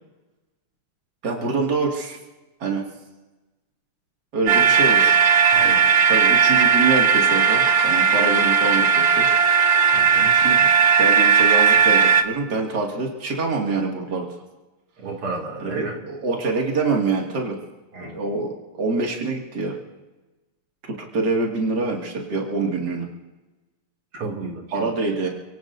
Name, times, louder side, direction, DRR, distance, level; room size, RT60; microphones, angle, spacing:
voice 1, 1.2-2.2 2.6-2.8 4.3-5.2 5.6-9.6 10.2-10.7 11.0-14.3 15.6-17.6 18.0-19.8 20.9-23.1 24.7-25.3, right 3 dB, 50° right, -1 dB, 2.9 m, -25 dB
sound 1, 4.5-12.2, right 6 dB, 65° right, 1.5 m, -17 dB
voice 2, 5.5-6.2 9.9-10.3 15.0-16.0 17.9-18.2 24.1-24.9, right 4 dB, 85° right, 0 dB, 3.4 m, -32 dB
29.5 x 17.5 x 2.7 m, 1.1 s
omnidirectional pair, 2.4 m